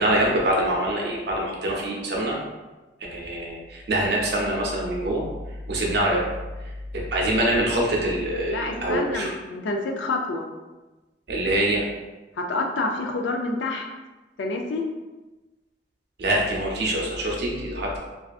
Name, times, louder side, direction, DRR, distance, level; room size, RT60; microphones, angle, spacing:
voice 1, 0.0-2.4 3.1-5.2 5.7-6.3 6.9-9.3 11.3-11.8 16.2-18.0, right 1 dB, 65° right, -2 dB, 0.6 m, -24 dB
voice 2, 8.5-10.4 12.4-13.9 14.4-14.8, left 2 dB, 85° left, 2 dB, 0.4 m, -28 dB
2.5 x 2.3 x 2.3 m, 1.2 s
head